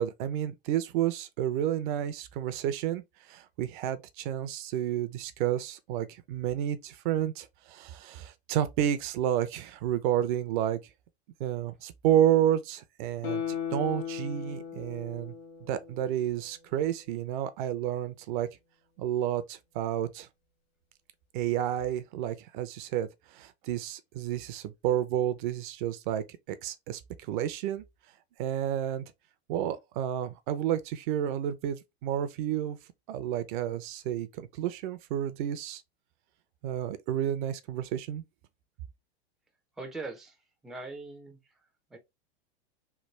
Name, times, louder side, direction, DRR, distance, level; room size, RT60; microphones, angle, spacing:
voice 1, 0.0-3.0 3.3-10.8 11.4-13.4 13.7-15.3 15.7-18.5 19.0-20.3 21.3-27.8 28.4-29.0 29.5-32.8 33.1-35.8 36.6-38.2, right 11 dB, 50° right, 0.6 m, -30 dB
Guitar, 13.2-16.5 16.9-17.0, left 8 dB, 60° left, 1.3 m, -37 dB
voice 2, 39.8-40.4 40.6-41.4 41.9-42.0, right 3 dB, ahead, 0.4 m, -40 dB
3.3 x 2.3 x 3.1 m
hypercardioid pair, 130°, 32 cm